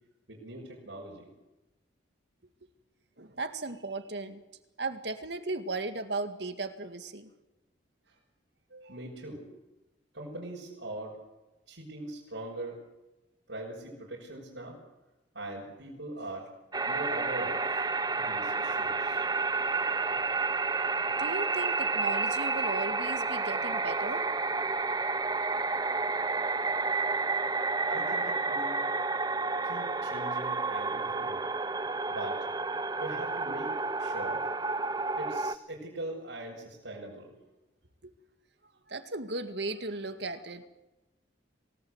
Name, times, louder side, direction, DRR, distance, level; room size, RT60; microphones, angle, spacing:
voice 1, 0.3-1.3 8.1-8.2 8.7-9.5 10.1-11.2 11.7-12.8 13.5-14.8 15.3-16.5 16.9-17.8 18.1-19.3 27.8-28.8 29.6-31.4 32.1-32.5 33.0-34.5 35.2-37.3, right 1 dB, 80° right, -5 dB, 6.3 m, -41 dB
voice 2, 3.2-4.4 4.8-7.3 21.2-24.2 38.0-38.1 38.9-40.7, right 3 dB, 65° right, 8 dB, 2.1 m, -36 dB
sound 1, 16.7-35.6, right 3 dB, 20° right, 0.7 m, -30 dB
28.0 x 18.0 x 8.1 m, 1.0 s
head